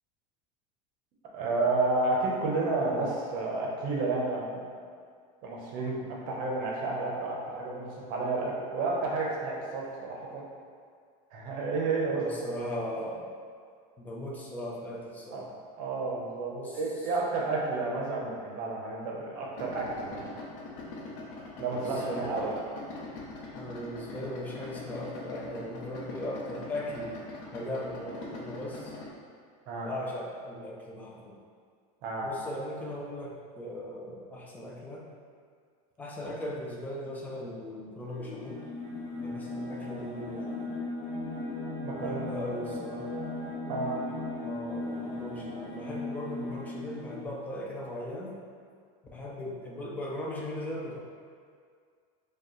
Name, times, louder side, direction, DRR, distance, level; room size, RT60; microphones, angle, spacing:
voice 1, 1.3-4.6 5.4-10.4 11.3-12.2 15.3-15.4 15.8-20.4 21.6-22.5 29.7-29.9 32.0-32.3 41.8-42.2 43.7-44.0, right 3 dB, 50° right, -3 dB, 0.8 m, -31 dB
voice 2, 12.1-13.2 14.0-15.5 16.6-16.8 21.8-22.7 23.5-27.2 27.5-29.0 29.8-31.4 32.2-35.1 36.0-38.7 39.2-40.6 42.0-43.1 44.4-48.4 49.1-51.0, left 1 dB, 10° left, -4 dB, 0.4 m, -38 dB
Idling, 19.5-29.1, left 2 dB, 60° left, 0.7 m, -43 dB
sound 1, 38.1-47.3, left 2 dB, 40° left, 1.1 m, -37 dB
4.7 x 2.3 x 3.1 m, 2.1 s
supercardioid pair, 160°, 18 cm